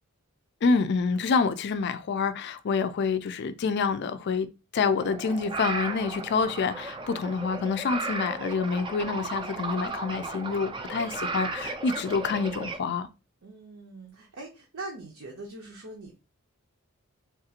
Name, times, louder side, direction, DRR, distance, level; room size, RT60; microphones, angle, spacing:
voice 1, 0.6-4.5 4.7-13.1, left 5 dB, 50° left, 0.3 m, -27 dB
sound 1, 4.8-12.8, right 3 dB, 25° right, 0.4 m, -35 dB
voice 2, 13.4-16.1, right 2 dB, 75° right, 0.8 m, -42 dB
3.5 x 2.4 x 2.7 m
head